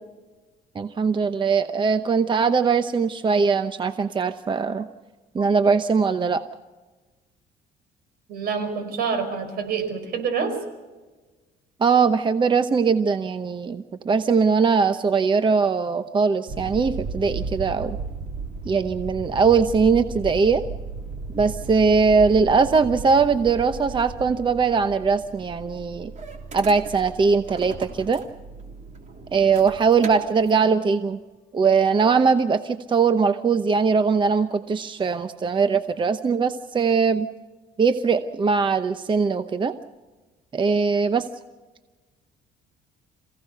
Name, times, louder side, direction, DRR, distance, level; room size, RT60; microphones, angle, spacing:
voice 1, 0.7-4.9 5.3-6.4 11.8-18.0 18.7-20.6 21.3-26.1 26.5-28.2 29.3-31.2 31.5-37.3 37.8-39.7 40.5-41.3, right 5 dB, 30° right, 10 dB, 0.8 m, -21 dB
voice 2, 8.3-10.5, right 6 dB, 65° right, 6 dB, 5.3 m, -27 dB
sound 1, 16.5-30.5, right 4 dB, 45° right, 3.4 m, -35 dB
27.5 x 16.5 x 6.8 m, 1.3 s
cardioid pair, 110°, 17 cm